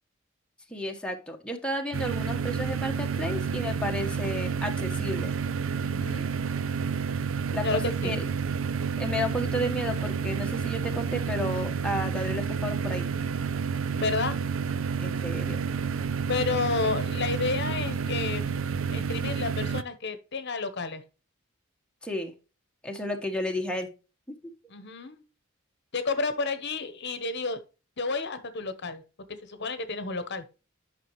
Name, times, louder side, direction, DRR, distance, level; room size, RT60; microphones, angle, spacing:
voice 1, 0.7-5.3 7.5-8.2 9.0-13.1 15.0-15.6 22.0-22.3 22.8-23.9, left 1 dB, 5° left, 2 dB, 1.1 m, -32 dB
sound 1, 1.9-19.8, right 6 dB, 65° right, 0.5 m, -30 dB
voice 2, 5.8-6.3 7.6-8.1 14.0-14.4 16.3-21.0 24.7-25.2 25.9-27.6 28.0-29.0 29.5-30.5, left 3 dB, 55° left, 10 dB, 1.0 m, -31 dB
10.5 x 5.9 x 3.0 m, 0.32 s
head